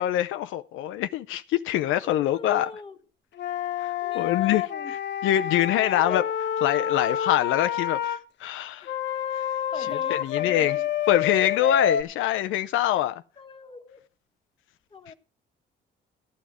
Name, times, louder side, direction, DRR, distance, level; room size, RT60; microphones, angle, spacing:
voice 1, 0.0-2.7 3.8-4.6 5.2-6.2 6.6-8.9 10.1-10.8 11.1-13.2, left 12 dB, 90° left, 0.5 m, -24 dB
voice 2, 2.0-3.0 4.0-4.9 5.8-6.3 8.8-8.9 9.7-10.9 11.5-11.9 12.9-13.0 13.4-14.0 14.9-15.1, left 4 dB, 25° left, 1.5 m, -41 dB
Wind instrument woodwind instrument, 3.4-8.2 8.9-12.0, left 9 dB, 65° left, 0.9 m, -28 dB
14.0 x 9.3 x 4.8 m
cardioid pair, 90°, 20 cm